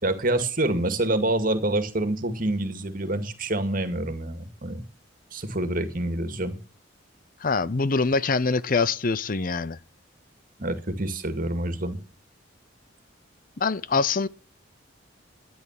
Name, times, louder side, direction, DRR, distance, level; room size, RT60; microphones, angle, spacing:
voice 1, 0.0-4.8 5.3-6.6 10.6-12.0, right 1 dB, 45° right, 2.2 m, -27 dB
voice 2, 7.4-9.8 13.6-14.3, left 4 dB, 45° left, 0.6 m, -24 dB
13.0 x 10.5 x 7.4 m
head